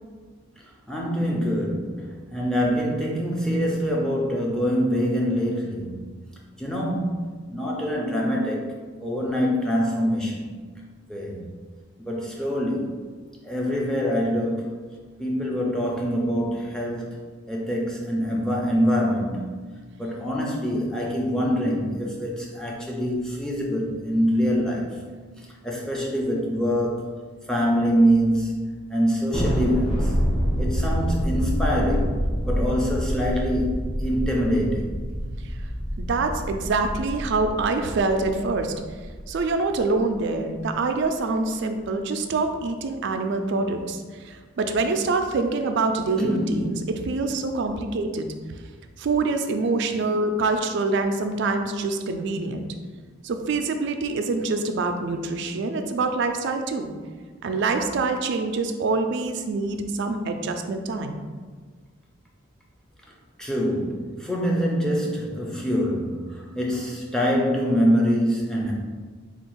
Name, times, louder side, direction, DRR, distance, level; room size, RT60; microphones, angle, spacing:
voice 1, 0.9-5.9 6.6-10.5 11.1-11.4 12.0-13.0 13.4-14.8 15.2-17.2 17.5-19.7 20.0-24.9 25.6-27.1 27.5-30.1 30.6-32.2 32.4-34.9 46.2-46.8 63.4-68.7, equal, 5° left, -3 dB, 0.5 m, -25 dB
Thunder, 29.3-40.0, equal, 25° left, 0.9 m, -27 dB
voice 2, 36.0-38.7 39.3-48.3 49.0-52.7 53.2-56.9 57.4-61.2, right 3 dB, 55° right, 6 dB, 0.3 m, -25 dB
3.5 x 2.3 x 4.5 m, 1.5 s
head